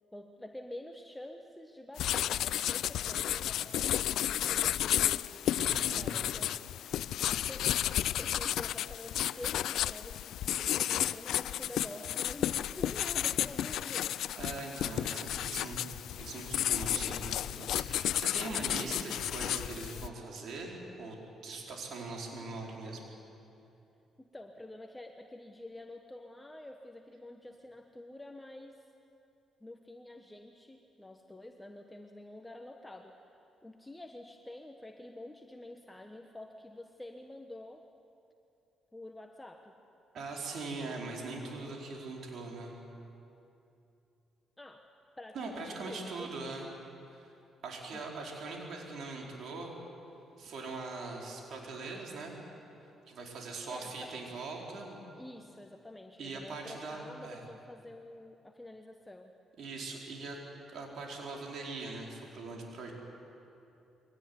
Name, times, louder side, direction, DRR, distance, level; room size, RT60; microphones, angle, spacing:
voice 1, 0.1-5.3 5.9-6.5 7.2-14.2 24.2-28.8 29.6-37.8 38.9-39.7 44.6-44.9 45.2-46.4 47.9-48.0 53.4-54.3 55.2-59.3, left 1 dB, 10° left, 3 dB, 1.3 m, -48 dB
sound 1, 2.0-20.1, left 11 dB, 80° left, 0.5 m, -32 dB
voice 2, 5.5-6.1 14.4-21.2 21.4-23.0 40.1-42.7 45.3-46.7 47.1-47.3 47.6-49.7 50.4-52.4 53.1-55.0 56.2-57.4 59.6-60.4 60.7-62.9, right 3 dB, 65° right, -1 dB, 4.9 m, -41 dB
22.5 x 18.0 x 9.9 m, 2.8 s
cardioid pair, 90°, 0 cm